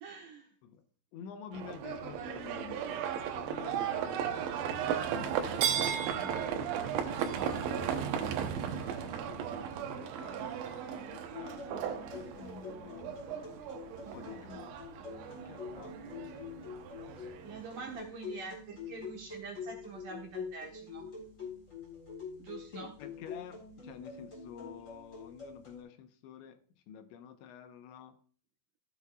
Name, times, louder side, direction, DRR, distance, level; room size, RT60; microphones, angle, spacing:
voice 1, 0.0-0.5 14.0-14.4 17.4-21.1 22.4-22.9, right 4 dB, 65° right, 1 dB, 2.4 m, -45 dB
voice 2, 1.1-7.1 7.4-13.6 14.1-16.0 22.7-26.6 26.9-28.2, left 8 dB, 80° left, 7 dB, 3.3 m, -50 dB
Livestock farm animals working animals, 1.5-18.0, right 8 dB, 85° right, 3.4 m, -36 dB
sound 1, 11.3-25.8, left 5 dB, 20° left, 3.7 m, -46 dB
14.5 x 8.3 x 2.4 m, 0.44 s
omnidirectional pair, 5.2 m